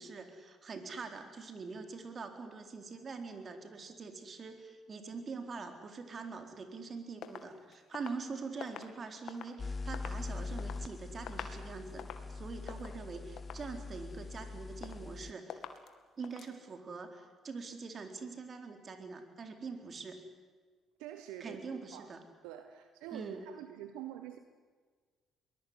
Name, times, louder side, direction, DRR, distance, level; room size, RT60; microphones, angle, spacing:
voice 1, 0.0-15.6 16.2-20.2 21.4-22.2 23.1-23.4, right 4 dB, 45° right, 6 dB, 4.1 m, -44 dB
sound 1, 7.2-9.6 9.9-10.8 11.2-11.6 11.9-12.3 12.7-13.0 13.4-13.7 14.1-14.5 14.8-15.2 15.5-15.9 16.2-16.5, left 8 dB, 65° left, 2.2 m, -47 dB
sound 2, 9.6-15.3, left 3 dB, 35° left, 0.6 m, -42 dB
voice 2, 21.0-21.6 21.9-22.1 22.4-24.4, right 11 dB, 80° right, 8 dB, 1.3 m, -46 dB
23.0 x 20.0 x 9.8 m, 1.5 s
hypercardioid pair, 55°, 0 cm